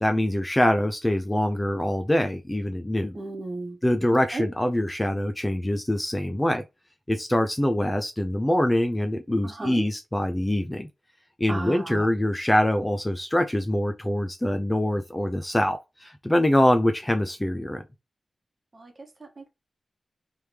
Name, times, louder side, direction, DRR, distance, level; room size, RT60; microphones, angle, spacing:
voice 1, 0.0-3.2 3.8-6.6 7.1-10.9 11.4-17.8, left 1 dB, 15° left, 0.4 m, -24 dB
voice 2, 3.1-3.8 4.3-4.4 9.4-9.9 11.5-12.1 18.7-19.5, right 2 dB, 30° right, 1.1 m, -34 dB
3.4 x 3.2 x 2.8 m
wide cardioid pair, 145°, 0 cm